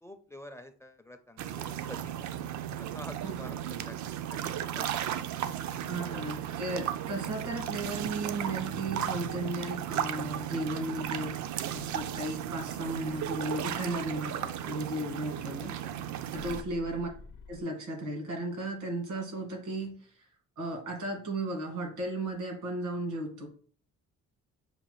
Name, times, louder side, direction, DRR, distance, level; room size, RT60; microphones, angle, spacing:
voice 1, 0.0-2.3 2.8-4.9 5.7-6.3 15.6-15.9 16.8-17.1, left 1 dB, 10° left, 8 dB, 0.4 m, -49 dB
sound 1, 1.4-16.6, right 10 dB, 70° right, 0.5 m, -35 dB
voice 2, 5.9-11.4 11.7-15.7 16.3-17.1 17.5-20.3 20.6-23.5, right 1 dB, 85° right, 1 dB, 1.7 m, -35 dB
sound 2, 8.5-17.6, left 3 dB, 80° left, 0.7 m, -51 dB
6.5 x 2.2 x 3.1 m, 0.42 s
cardioid pair, 90°, 30 cm